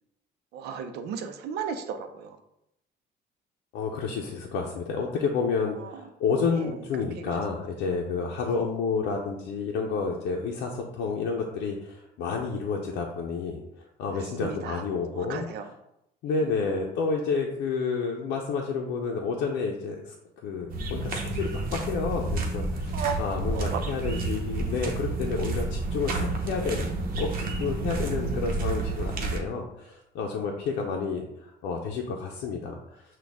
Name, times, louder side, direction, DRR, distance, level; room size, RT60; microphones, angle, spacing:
voice 1, 0.5-2.4 5.8-6.0 6.5-6.8 7.1-7.2 8.4-8.6 14.4-14.8 15.1-15.7 16.3-16.4 22.9-23.2 23.5-23.8, right 7 dB, 75° right, 7 dB, 0.6 m, -35 dB
voice 2, 3.7-15.5 16.2-20.1 20.4-26.9 27.2-33.0, left 5 dB, 85° left, 0 dB, 0.6 m, -30 dB
sound 1, 20.7-29.4, right 3 dB, 55° right, 0.9 m, -30 dB
6.1 x 2.3 x 3.5 m, 0.82 s
cardioid pair, 110°, 17 cm